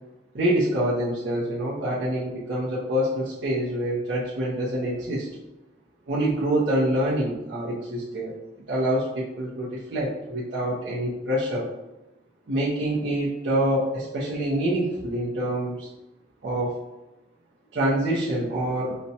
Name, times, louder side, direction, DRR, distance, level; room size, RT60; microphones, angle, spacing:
voice 1, 0.3-5.3 6.1-8.3 8.7-11.7 12.5-15.9 16.4-16.8 17.7-19.0, right 1 dB, 70° right, -8 dB, 0.6 m, -26 dB
4.0 x 2.2 x 2.7 m, 1.0 s
head